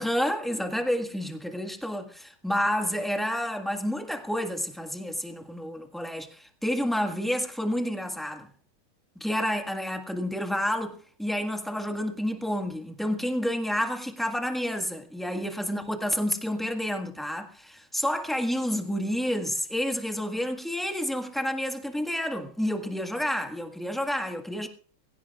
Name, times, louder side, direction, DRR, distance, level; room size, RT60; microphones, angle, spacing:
voice 1, 0.0-8.5 9.2-24.7, equal, ahead, 1.4 m, -29 dB
22.5 x 16.5 x 2.4 m
omnidirectional pair, 2.3 m